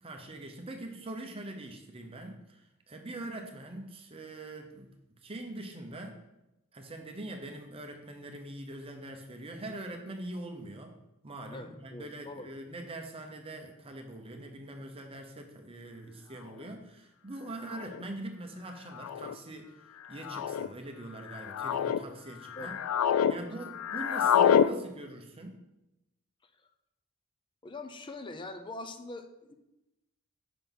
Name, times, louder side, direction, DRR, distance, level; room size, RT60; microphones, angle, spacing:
voice 1, 0.0-4.9 5.2-6.2 6.7-11.0 11.2-19.8 20.1-22.7 23.3-25.6, right 1 dB, 25° right, 3 dB, 0.7 m, -43 dB
voice 2, 11.5-12.5 22.6-22.7 23.2-23.5 27.6-29.5, left 2 dB, 25° left, 8 dB, 0.5 m, -43 dB
sound 1, 16.6-16.7 17.7-18.0 19.0-19.3 20.2-20.7 21.3-22.0 22.5-23.4 23.6-24.7, left 8 dB, 90° left, 0.3 m, -27 dB
5.8 x 3.9 x 5.4 m, 0.92 s
head